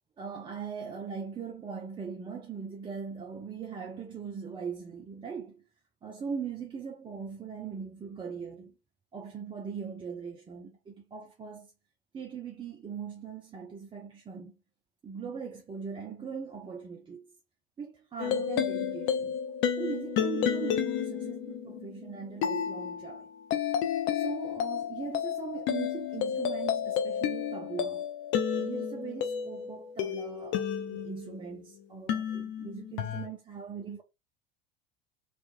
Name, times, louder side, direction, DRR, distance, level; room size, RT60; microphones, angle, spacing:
voice 1, 0.2-5.7 6.0-8.8 9.1-11.7 12.1-14.6 15.0-17.4 17.8-19.4 19.8-23.3 24.1-28.1 28.5-34.0, right 6 dB, 15° right, 0.5 m, -40 dB
sound 1, 18.2-31.6 32.1-33.3, left 8 dB, 45° left, 0.5 m, -31 dB
3.0 x 2.3 x 2.5 m
figure-of-eight pair, 75°, 29 cm